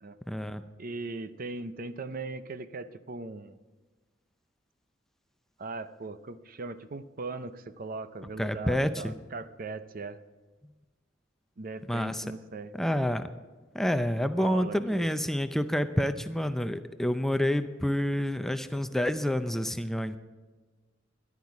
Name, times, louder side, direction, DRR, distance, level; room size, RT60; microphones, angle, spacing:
voice 1, 0.3-0.6 8.4-9.1 11.9-12.2 12.7-13.2 13.7-20.2, equal, ahead, 9 dB, 0.5 m, -28 dB
voice 2, 0.8-3.6 5.6-10.2 11.6-12.7 14.2-15.1, right 3 dB, 50° right, 12 dB, 0.7 m, -39 dB
13.5 x 11.0 x 4.8 m, 1.3 s
head